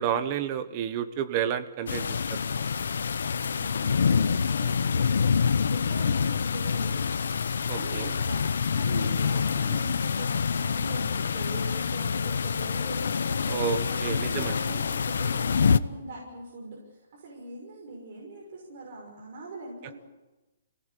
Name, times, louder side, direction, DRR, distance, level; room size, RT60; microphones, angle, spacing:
voice 1, 0.0-2.4 7.7-8.1 13.4-14.6, right 8 dB, 25° right, 10 dB, 1.2 m, -30 dB
sound 1, 1.9-15.8, left 6 dB, 90° left, 0.9 m, -26 dB
voice 2, 3.4-7.0 7.7-13.5 13.8-19.9, right 2 dB, 45° right, -2 dB, 5.9 m, -42 dB
27.5 x 18.5 x 8.5 m, 1.1 s
hypercardioid pair, 175°, 0 cm